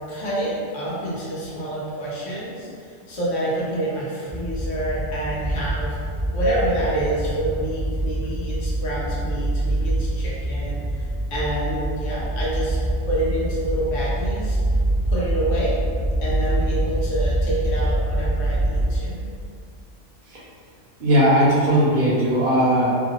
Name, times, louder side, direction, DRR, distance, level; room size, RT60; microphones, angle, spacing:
voice 1, 0.1-6.0 6.3-14.6 15.1-15.8 16.2-19.2, right 1 dB, 85° left, -7 dB, 1.1 m, -27 dB
sound 1, 4.3-19.0, right 1 dB, 15° left, 0.6 m, -25 dB
voice 2, 21.0-22.9, equal, 55° right, -6 dB, 0.8 m, -18 dB
2.8 x 2.4 x 2.9 m, 2.3 s
omnidirectional pair, 1.2 m